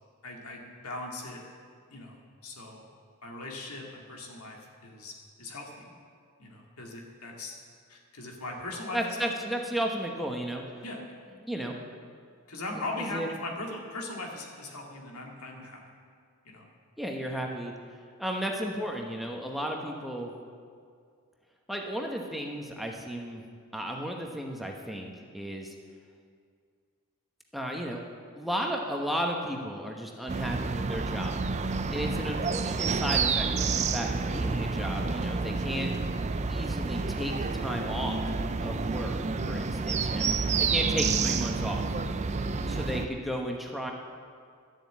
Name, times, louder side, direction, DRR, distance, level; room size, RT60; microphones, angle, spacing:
voice 1, 0.2-1.4 1.9-2.9 3.2-5.9 6.4-7.5 7.9-9.6 10.8-11.0 12.5-15.8 16.4-16.7 31.9-32.3, left 2 dB, 85° left, 0 dB, 2.2 m, -39 dB
voice 2, 8.9-10.6 11.4-11.8 13.0-13.3 17.0-17.7 18.2-20.3 21.7-23.4 23.7-25.7 27.5-28.0 28.4-31.4 31.9-35.9 36.5-38.2 38.6-39.2 39.5-40.3 40.6-41.8 42.7-43.9, equal, ahead, 0 dB, 1.0 m, -34 dB
sound 1, 30.3-43.1, right 4 dB, 30° right, 0.5 m, -29 dB
12.5 x 7.7 x 8.5 m, 2.1 s
head